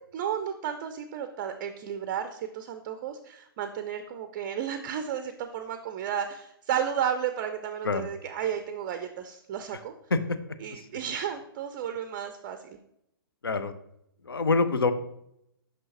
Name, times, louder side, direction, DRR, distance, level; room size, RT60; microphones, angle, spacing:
voice 1, 0.1-9.9 10.6-12.8, right 9 dB, 30° right, 9 dB, 0.4 m, -33 dB
voice 2, 14.3-14.9, left 3 dB, 75° left, 11 dB, 0.6 m, -25 dB
6.1 x 5.5 x 2.9 m, 0.77 s
figure-of-eight pair, 120°, 12 cm